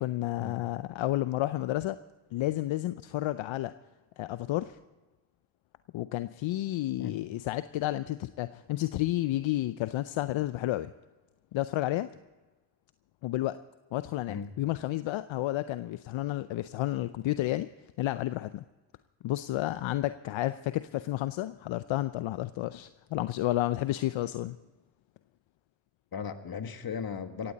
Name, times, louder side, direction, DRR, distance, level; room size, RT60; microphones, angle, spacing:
voice 1, 0.0-2.0 2.3-3.7 4.2-4.8 5.9-10.9 11.5-12.1 13.2-13.6 13.9-17.7 18.0-18.6 19.2-24.6, left 15 dB, 70° left, 13 dB, 0.7 m, -31 dB
voice 2, 26.1-27.5, left 6 dB, 45° left, 9 dB, 1.6 m, -36 dB
18.0 x 15.5 x 4.1 m, 1.2 s
supercardioid pair, 50°, 48 cm